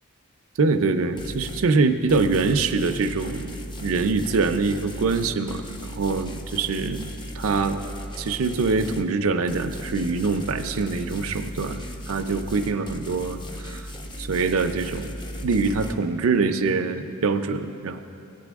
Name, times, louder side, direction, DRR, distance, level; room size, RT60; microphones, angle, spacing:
voice 1, 0.6-7.1 7.3-13.9 14.2-15.1 15.4-18.0, right 4 dB, 75° right, 7 dB, 0.5 m, -24 dB
sound 1, 1.2-1.7 2.1-9.1 9.5-15.9, equal, 20° left, 0.6 m, -37 dB
17.5 x 8.4 x 3.5 m, 2.7 s
head